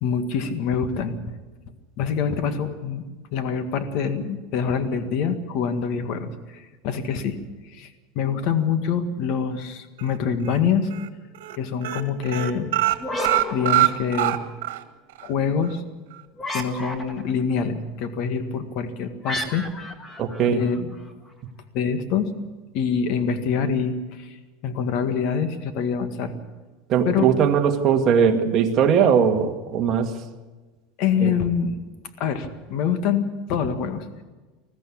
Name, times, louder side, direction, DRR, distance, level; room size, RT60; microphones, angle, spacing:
voice 1, 0.0-1.4 2.0-3.0 3.3-7.4 7.7-7.9 8.2-10.9 11.6-12.7 13.5-14.4 15.2-15.8 16.5-19.7 20.5-20.9 21.7-22.3 22.7-24.4 24.6-26.3 27.1-27.3 31.0-31.8 32.2-34.1, left 6 dB, 50° left, 9 dB, 1.9 m, -25 dB
sound 1, 10.0-10.6 10.9-11.1 11.3-11.6 11.8-14.8 15.2-15.3 15.6-15.7, right 16 dB, 90° right, 1.6 m, -23 dB
funny laugh like, 12.9-14.5 16.3-17.4 19.2-21.1, left 1 dB, 15° left, 1.8 m, -32 dB
voice 2, 20.2-20.6 26.9-30.1 31.2-31.3, right 7 dB, 35° right, 3 dB, 2.0 m, -20 dB
20.5 x 14.5 x 8.7 m, 1.3 s
supercardioid pair, 150°, 0 cm